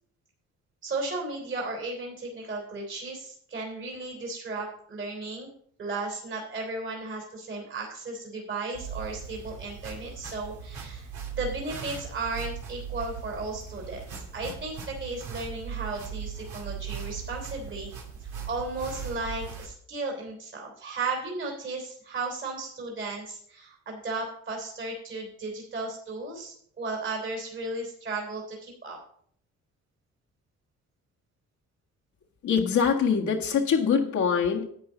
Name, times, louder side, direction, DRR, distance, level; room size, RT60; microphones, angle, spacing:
voice 1, 0.8-5.5 5.8-11.1 11.3-17.9 18.2-29.0, right 3 dB, 40° right, 3.2 m, -35 dB
sound 1, 8.7-19.7, right 7 dB, 75° right, 2.8 m, -39 dB
voice 2, 32.4-34.7, left 6 dB, 70° left, 1.7 m, -24 dB
10.5 x 8.7 x 4.0 m
cardioid pair, 90°, 30 cm